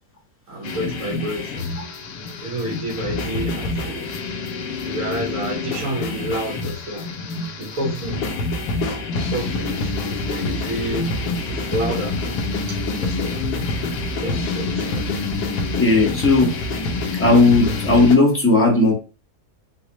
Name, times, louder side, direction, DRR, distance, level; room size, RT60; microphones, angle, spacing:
voice 1, 0.5-1.7 2.4-4.1 4.8-7.1 7.6-8.2 9.1-12.2 13.0-13.5 14.2-15.1, right 1 dB, 60° right, -3 dB, 1.5 m, -29 dB
sound 1, 0.6-18.2, left 3 dB, 80° left, 1.2 m, -26 dB
voice 2, 15.8-16.5 17.2-18.9, left 3 dB, 15° left, -2 dB, 0.5 m, -15 dB
3.9 x 2.3 x 2.8 m, 0.33 s
omnidirectional pair, 1.7 m